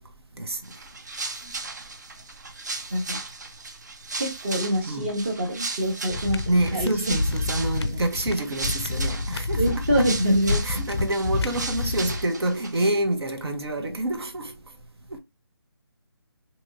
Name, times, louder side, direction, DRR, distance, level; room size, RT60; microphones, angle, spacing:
voice 1, 0.4-0.8 1.4-1.5 4.9-5.1 6.5-10.0 10.6-14.6 15.1-15.2, right 1 dB, 75° right, 0.8 m, -27 dB
sound 1, 0.6-12.9, right 3 dB, 45° right, 0.4 m, -36 dB
voice 2, 4.1-6.4 6.7-7.2 9.6-10.6 11.0-11.1, equal, 25° right, 0.9 m, -25 dB
sound 2, 6.1-12.3, left 3 dB, 85° left, 0.4 m, -29 dB
3.0 x 2.8 x 2.5 m
figure-of-eight pair, 175°, 13 cm